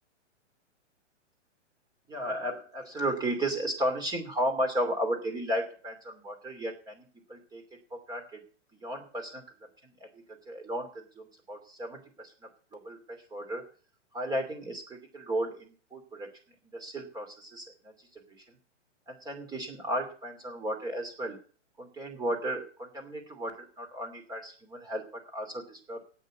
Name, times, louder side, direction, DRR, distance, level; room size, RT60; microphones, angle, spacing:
voice 1, 2.1-7.6 7.9-8.4 8.8-9.4 9.8-12.3 12.7-13.6 14.1-16.3 16.7-18.2 18.5-18.6 19.1-21.4 21.8-26.0, right 1 dB, 10° right, 3 dB, 2.7 m, -34 dB
8.7 x 8.1 x 9.3 m, 0.42 s
hypercardioid pair, 140°, 37 cm